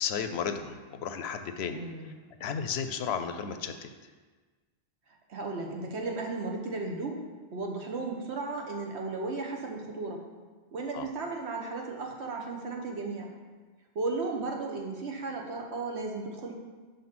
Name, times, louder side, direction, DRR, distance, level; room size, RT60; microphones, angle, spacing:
voice 1, 0.0-1.8 2.4-3.9 10.9-11.1, left 7 dB, 70° left, 8 dB, 0.8 m, -33 dB
voice 2, 1.7-2.1 5.3-7.2 7.5-10.2 10.7-13.3 13.9-16.5, right 3 dB, 75° right, 1 dB, 1.3 m, -35 dB
5.5 x 5.2 x 6.0 m, 1.4 s
omnidirectional pair, 1.1 m